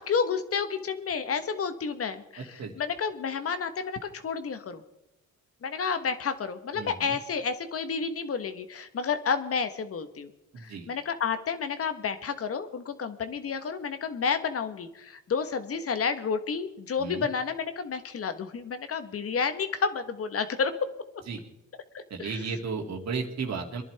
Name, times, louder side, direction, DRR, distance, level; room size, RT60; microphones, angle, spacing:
voice 1, 0.0-4.8 5.6-10.3 10.6-20.9 21.9-22.4, left 5 dB, 50° left, 10 dB, 1.2 m, -30 dB
voice 2, 6.8-7.2 10.5-10.9 17.0-17.3 21.3-21.4 22.1-23.8, right 5 dB, 60° right, 2 dB, 2.5 m, -34 dB
23.5 x 11.0 x 3.4 m, 0.92 s
cardioid pair, 90°, 30 cm